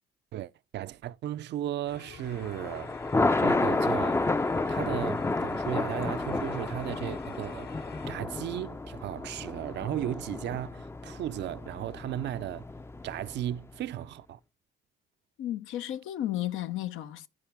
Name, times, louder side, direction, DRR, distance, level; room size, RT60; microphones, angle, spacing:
voice 1, 0.3-2.9 3.4-4.3 4.7-7.8 8.1-12.7 13.0-14.4, right 12 dB, 60° right, 0.5 m, -35 dB
sound 1, 1.9-8.2, left 8 dB, 55° left, 1.0 m, -48 dB
Thunder, 2.3-13.6, left 2 dB, 15° left, 0.4 m, -31 dB
voice 2, 15.4-17.3, left 13 dB, 85° left, 0.8 m, -33 dB
14.5 x 4.9 x 3.5 m
cardioid pair, 90°, 20 cm